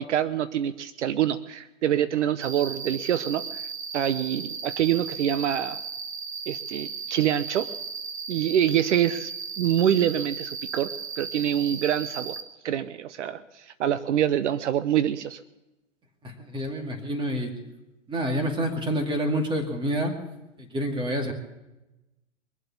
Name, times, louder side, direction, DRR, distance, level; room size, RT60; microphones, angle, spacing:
voice 1, 0.0-3.6 3.9-5.8 6.5-7.7 8.3-9.3 9.6-12.4 12.6-15.4, right 10 dB, 65° right, 14 dB, 0.8 m, -25 dB
Cricket, 2.4-12.4, right 5 dB, 85° right, 2.1 m, -36 dB
voice 2, 16.4-17.5 18.1-20.1 20.6-21.3, equal, 10° right, 4 dB, 2.3 m, -28 dB
23.0 x 7.9 x 7.1 m, 1.0 s
hypercardioid pair, 130°, 38 cm